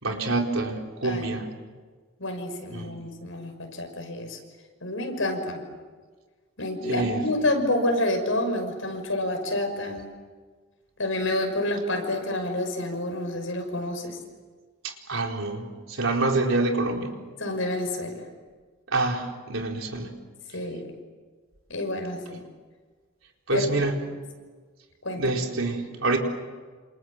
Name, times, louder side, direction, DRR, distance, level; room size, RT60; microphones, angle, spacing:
voice 1, 0.0-1.5 2.7-2.9 6.8-7.2 14.8-17.1 18.9-20.1 23.5-23.9 25.1-26.2, right 2 dB, 70° right, 1 dB, 4.3 m, -27 dB
voice 2, 2.2-4.4 4.8-5.6 6.6-10.1 11.0-14.2 17.4-18.2 20.5-20.9 21.7-22.4 23.5-23.7 25.0-25.2, left 1 dB, 70° left, 4 dB, 6.1 m, -28 dB
28.5 x 27.5 x 7.5 m, 1.5 s
head